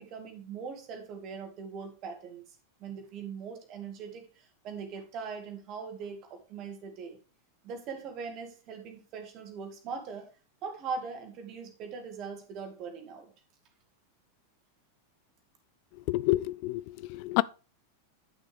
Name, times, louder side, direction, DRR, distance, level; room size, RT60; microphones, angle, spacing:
voice 1, 0.0-2.4 2.8-7.2 7.6-10.3 10.6-13.3, right 5 dB, 35° right, 2.2 m, -41 dB
voice 2, 16.1-17.4, left 19 dB, 45° left, 0.3 m, -28 dB
10.5 x 6.3 x 3.5 m
figure-of-eight pair, 90°, 0 cm